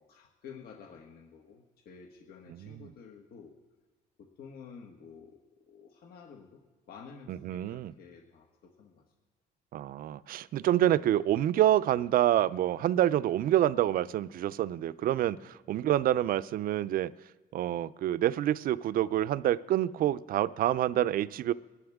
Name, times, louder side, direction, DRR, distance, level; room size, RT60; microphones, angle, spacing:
voice 1, 0.0-3.6 4.2-6.6 6.9-9.0 12.9-13.0 15.4-15.5, left 6 dB, 65° left, 2 dB, 1.6 m, -51 dB
voice 2, 2.5-2.9 7.3-7.9 9.7-17.1 17.5-21.5, right 12 dB, 60° right, 17 dB, 0.5 m, -27 dB
23.0 x 11.5 x 3.6 m, 1.3 s
cardioid pair, 110°, 17 cm